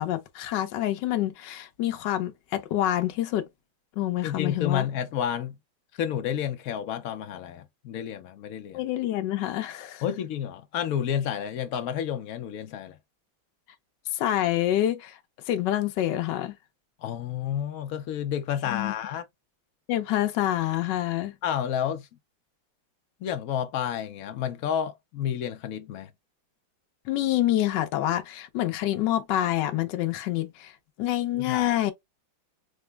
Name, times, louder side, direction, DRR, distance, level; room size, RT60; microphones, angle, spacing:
voice 1, 0.0-3.5 4.0-4.9 8.7-10.0 14.1-15.2 15.5-16.6 18.7-18.9 19.9-21.3 27.1-30.7 31.0-31.9, left 13 dB, 70° left, 1.3 m, -27 dB
voice 2, 4.2-5.6 5.9-8.8 10.0-13.0 17.0-19.2 21.4-22.1 23.2-26.1 31.4-31.9, left 9 dB, 85° left, 0.7 m, -30 dB
5.0 x 2.0 x 3.3 m
omnidirectional pair, 2.2 m